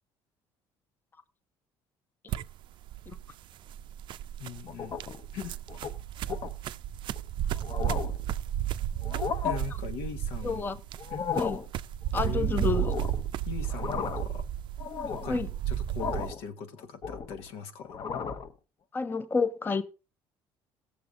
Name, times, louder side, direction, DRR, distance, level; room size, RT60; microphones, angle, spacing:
sound 1, 2.3-16.3, right 11 dB, 55° right, 0.4 m, -33 dB
voice 1, 4.4-5.0 5.3-5.6 9.4-10.8 11.1-11.2 12.2-12.6 13.4-14.5 15.1-18.0, left 6 dB, 90° left, 1.3 m, -40 dB
sound 2, 4.7-5.2 5.7-5.9 6.3-6.5 7.1-7.2 7.6-8.2 9.0-9.6 11.0-11.7 12.7-13.3 13.6-14.4 14.8-15.4 16.0-16.4 16.8-17.5 17.8-18.5, left 6 dB, 40° left, 0.9 m, -34 dB
voice 2, 10.4-10.8 11.3-11.6 12.1-12.9 15.3-15.5 18.9-19.8, left 4 dB, 20° left, 0.6 m, -29 dB
16.5 x 7.0 x 3.7 m
cardioid pair, 125°, 10 cm